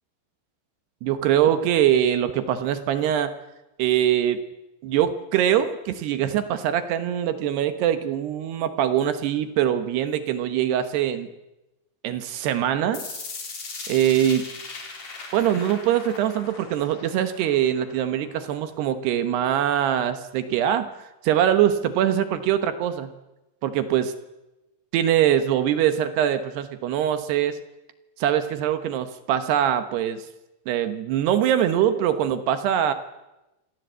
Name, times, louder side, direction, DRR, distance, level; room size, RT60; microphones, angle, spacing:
voice 1, 1.0-3.4 3.8-4.4 4.8-11.3 12.0-13.2 13.9-14.4 15.3-20.9 21.2-23.1 23.6-24.1 24.9-27.6 28.2-30.3 30.7-32.9, right 10 dB, 70° right, 10 dB, 2.9 m, -23 dB
sound 1, 12.9-18.9, left 4 dB, 45° left, 5.1 m, -39 dB
26.5 x 18.5 x 8.1 m, 0.99 s
omnidirectional pair, 5.5 m